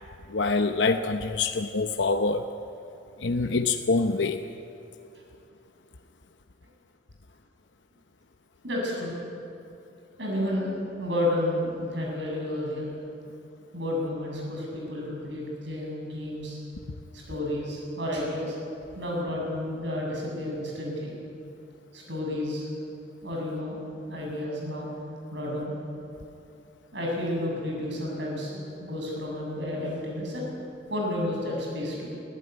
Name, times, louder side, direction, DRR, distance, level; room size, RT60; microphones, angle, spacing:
voice 1, 0.3-2.5 3.2-4.4, left 3 dB, 75° left, 6 dB, 0.8 m, -25 dB
voice 2, 8.6-9.2 10.2-12.9 13.7-16.6 17.1-18.6 18.9-21.1 21.9-22.7 23.2-23.8 24.1-24.9 25.3-25.7 26.9-30.5 30.9-32.1, left 1 dB, 75° right, -2 dB, 7.6 m, -31 dB
24.0 x 15.0 x 9.5 m, 2.8 s
head